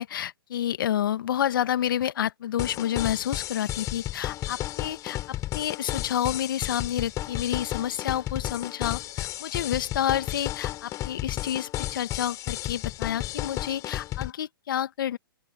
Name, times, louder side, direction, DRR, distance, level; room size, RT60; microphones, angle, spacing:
voice 1, 0.0-5.2 5.5-15.2, left 10 dB, 65° left, 1.7 m, -29 dB
sound 1, 2.6-14.3, left 15 dB, 25° left, 4.7 m, -33 dB
open air
hypercardioid pair, 135°, 12 cm